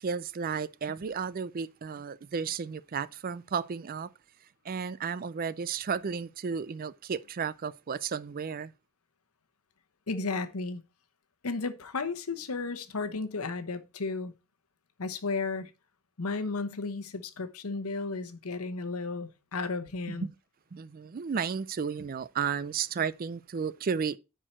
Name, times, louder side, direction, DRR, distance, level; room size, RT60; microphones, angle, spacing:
voice 1, 0.0-4.1 4.6-8.7 20.1-20.3 20.7-24.2, right 6 dB, 40° right, 0.4 m, -33 dB
voice 2, 10.1-10.8 11.4-14.3 15.0-15.7 16.2-20.3, left 3 dB, 80° left, 1.0 m, -34 dB
10.0 x 4.7 x 4.3 m
head